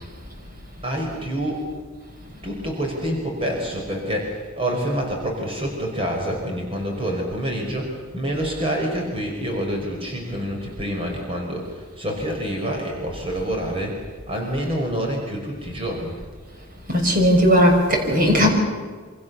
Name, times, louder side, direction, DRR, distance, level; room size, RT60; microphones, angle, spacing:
voice 1, 0.8-1.6 2.4-16.2, equal, 30° right, 5.1 m, -27 dB
voice 2, 16.9-18.5, equal, 45° right, 6.2 m, -17 dB
27.5 x 26.5 x 7.0 m
head